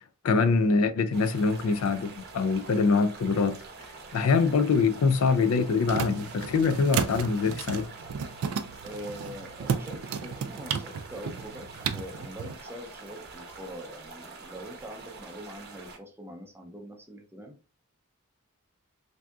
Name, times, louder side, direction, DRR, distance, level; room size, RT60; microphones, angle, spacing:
voice 1, 0.2-3.6 4.1-7.9, left 4 dB, 70° left, 0.4 m, -24 dB
sound 1, 1.1-16.0, right 3 dB, 50° right, 0.7 m, -45 dB
sound 2, 5.6-12.5, right 6 dB, 70° right, 0.4 m, -34 dB
voice 2, 8.8-17.6, equal, 10° right, 0.5 m, -43 dB
3.4 x 2.6 x 2.3 m
head